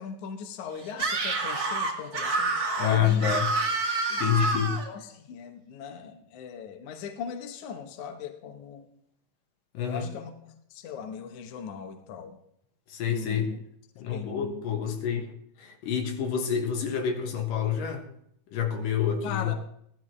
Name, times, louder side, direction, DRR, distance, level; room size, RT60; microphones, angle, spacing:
voice 1, 0.0-3.4 4.1-4.4 4.7-8.8 9.8-12.4 13.1-13.6 14.0-14.6 19.2-19.5, left 7 dB, 70° left, 5 dB, 2.4 m, -40 dB
Screaming, 0.9-4.9, right 3 dB, 40° right, 1.5 m, -28 dB
voice 2, 2.8-3.5 4.2-4.8 9.7-10.1 12.9-13.6 14.0-15.3 15.6-18.1 18.5-19.5, left 8 dB, 85° left, 4 dB, 3.0 m, -27 dB
17.0 x 12.0 x 3.2 m, 0.72 s
omnidirectional pair, 3.8 m